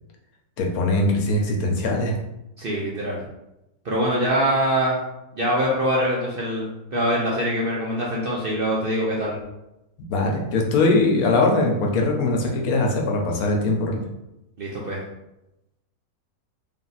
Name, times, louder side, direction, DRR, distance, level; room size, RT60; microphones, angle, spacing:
voice 1, 0.6-2.2 10.1-14.0, left 2 dB, 75° left, 1 dB, 1.2 m, -21 dB
voice 2, 2.6-3.2 3.8-5.0 5.3-9.3 14.6-15.0, equal, 55° right, -4 dB, 0.6 m, -24 dB
3.5 x 2.6 x 4.0 m, 0.91 s
omnidirectional pair, 1.6 m